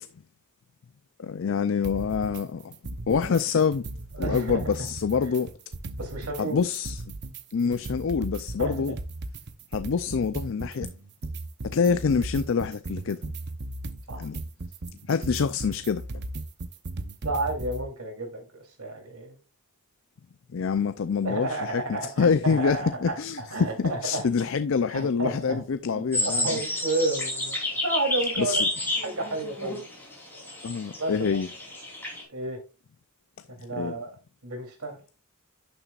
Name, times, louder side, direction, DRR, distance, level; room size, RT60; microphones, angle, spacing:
voice 1, 1.2-2.8 3.1-3.8 4.2-5.5 6.4-7.0 7.5-8.9 9.7-10.9 11.6-13.2 14.2-14.4 15.1-16.0 20.5-26.6 28.4-28.7 30.6-31.5 33.7-33.9, left 5 dB, 60° left, 0.4 m, -26 dB
sound 1, 1.8-2.4 2.7-3.4 3.7-6.4 6.7-17.8, right 2 dB, 50° right, 0.7 m, -36 dB
voice 2, 4.1-4.6 6.0-6.6 8.6-9.0 14.1-14.3 17.2-19.4 21.2-24.2 24.9-25.6 25.9-27.5 27.8-28.6 29.0-29.8 31.0-31.4 32.3-32.6 33.5-34.1 34.4-35.0, right 2 dB, 85° right, 3.1 m, -31 dB
sound 2, 26.1-32.2, left 2 dB, 10° left, 3.4 m, -30 dB
11.0 x 7.0 x 2.4 m
head